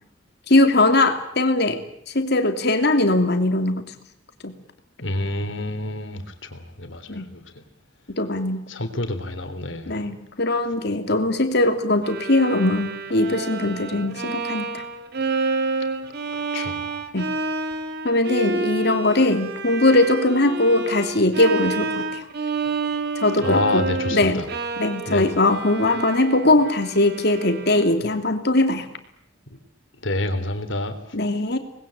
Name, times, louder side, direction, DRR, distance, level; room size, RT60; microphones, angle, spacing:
voice 1, 0.5-1.8 2.1-3.8 4.4-4.5 7.1-7.3 8.2-8.7 9.9-14.8 16.6-16.7 17.1-17.3 18.0-22.2 23.2-23.8 24.1-24.4 24.8-28.9 31.1-31.6, left 2 dB, 55° left, 7 dB, 2.9 m, -20 dB
voice 2, 5.0-6.2 6.5-7.6 8.7-10.0 16.5-17.0 23.4-24.5 25.1-25.2 30.0-30.9, left 2 dB, 75° left, 8 dB, 3.4 m, -28 dB
Bowed string instrument, 12.0-28.1, right 3 dB, 55° right, 2.1 m, -29 dB
26.0 x 20.5 x 8.9 m, 0.72 s
head